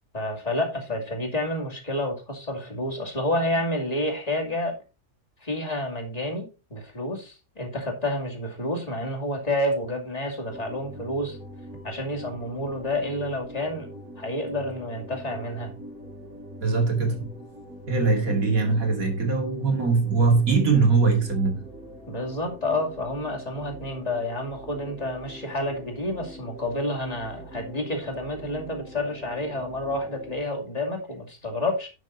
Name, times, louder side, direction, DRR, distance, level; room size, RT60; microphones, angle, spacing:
voice 1, 0.1-4.8 5.4-11.4 11.8-13.9 14.2-15.7 22.1-31.9, left 1 dB, 25° left, 2.5 m, -29 dB
sound 1, 10.4-30.4, equal, 90° right, 5.2 m, -43 dB
voice 2, 16.6-17.4 17.9-21.6, right 4 dB, 65° right, 2.8 m, -22 dB
10.5 x 6.2 x 4.0 m
omnidirectional pair, 1.6 m